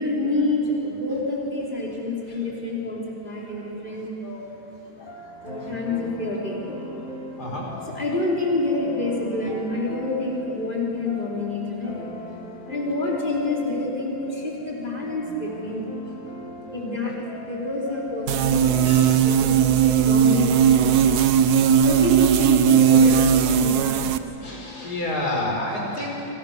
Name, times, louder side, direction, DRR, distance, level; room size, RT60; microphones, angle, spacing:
voice 1, 0.0-4.6 5.4-6.7 7.9-12.1 12.7-15.9 16.7-21.2 21.8-24.2, left 2 dB, 30° left, -4 dB, 4.7 m, -28 dB
sound 1, 5.0-19.2, left 1 dB, 55° left, 7.0 m, -39 dB
voice 2, 7.4-7.7 18.8-19.1 23.4-23.6 24.4-26.3, left 1 dB, 75° left, -1 dB, 5.7 m, -29 dB
sound 2, 18.3-24.2, right 8 dB, 80° right, 1.4 m, -18 dB
28.0 x 24.0 x 6.8 m, 3.0 s
omnidirectional pair, 1.7 m